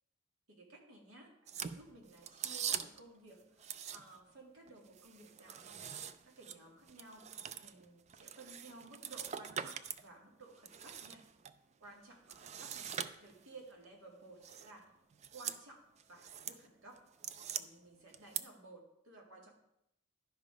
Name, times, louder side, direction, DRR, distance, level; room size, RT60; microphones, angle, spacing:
voice 1, 0.5-11.3 11.8-14.9 15.3-15.8 16.1-17.0 17.5-19.5, right 2 dB, 70° right, 0 dB, 2.2 m, -56 dB
sound 1, 1.5-3.1 3.6-4.3 4.7-10.0 10.4-11.5 12.3-13.6 14.4-14.7 15.1-15.6 16.0-16.6 17.0-17.6 18.1-18.4, right 8 dB, 30° right, 0.3 m, -43 dB
11.5 x 5.2 x 5.1 m, 0.82 s
head